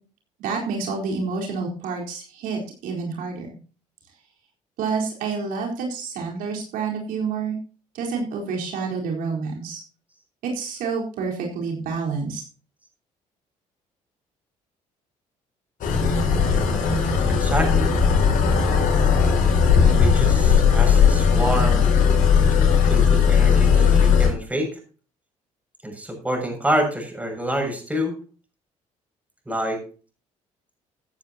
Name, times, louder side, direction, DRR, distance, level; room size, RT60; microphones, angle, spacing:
voice 1, 0.4-3.5 4.8-7.6 7.9-9.8 10.4-12.4, right 5 dB, 80° right, 0 dB, 4.4 m, -28 dB
sound 1, 15.8-24.3, left 6 dB, 70° left, 5.8 m, -17 dB
voice 2, 17.3-17.9 19.7-21.9 22.9-24.8 25.8-28.2 29.4-29.8, equal, 10° right, 3 dB, 7.0 m, -27 dB
16.5 x 9.6 x 2.9 m, 0.37 s
cardioid pair, 85°, 14 cm